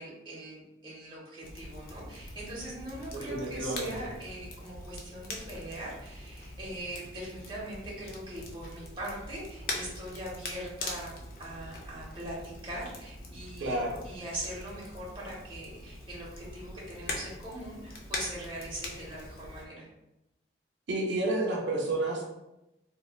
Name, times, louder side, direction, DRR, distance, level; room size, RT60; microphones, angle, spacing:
voice 1, 0.0-13.8 14.0-19.9, right 1 dB, 25° right, -5 dB, 0.8 m, -41 dB
Crackle, 1.4-19.6, left 2 dB, 50° left, 0.5 m, -42 dB
voice 2, 3.1-3.9 13.6-14.0 20.9-22.2, right 2 dB, 75° right, -2 dB, 0.5 m, -30 dB
3.0 x 2.2 x 2.3 m, 0.92 s
head